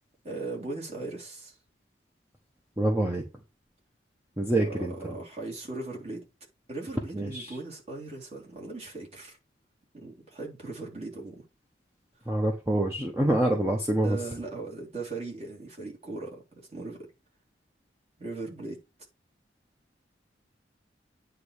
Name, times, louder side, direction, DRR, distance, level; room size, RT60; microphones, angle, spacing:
voice 1, 0.2-1.5 4.6-6.2 6.7-9.4 9.9-11.4 14.0-16.4 16.7-17.1 18.2-18.8, right 3 dB, 35° right, 3.4 m, -38 dB
voice 2, 2.8-3.2 4.4-4.9 7.1-7.5 12.3-14.2, right 1 dB, 15° right, 1.2 m, -26 dB
9.3 x 3.3 x 6.5 m
head